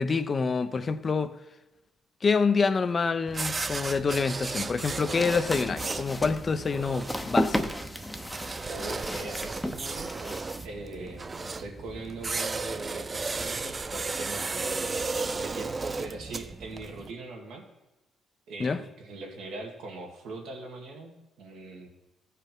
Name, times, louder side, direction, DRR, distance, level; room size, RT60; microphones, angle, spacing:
voice 1, 0.0-1.4 2.2-7.7 18.6-18.8, left 4 dB, 35° left, 0.6 m, -27 dB
sound 1, 3.3-17.1, right 3 dB, 30° right, 0.4 m, -35 dB
sound 2, 4.6-10.7, left 1 dB, 5° left, 0.7 m, -34 dB
voice 2, 8.6-17.6 18.5-21.9, right 2 dB, 85° right, 1.9 m, -41 dB
14.5 x 5.1 x 4.5 m
cardioid pair, 90°, 0 cm